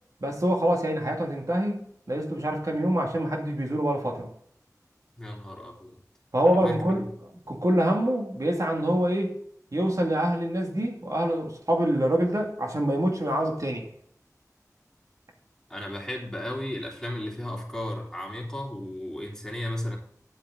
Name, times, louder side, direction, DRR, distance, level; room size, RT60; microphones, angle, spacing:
voice 1, 0.2-4.3 6.3-7.1 7.5-9.4 9.7-13.9, right 1 dB, 60° right, 1 dB, 2.2 m, -25 dB
voice 2, 5.2-6.0 6.4-7.1 15.7-20.0, left 1 dB, 10° left, -3 dB, 3.3 m, -34 dB
10.5 x 8.4 x 3.9 m, 0.66 s
wide cardioid pair, 45°, 6 cm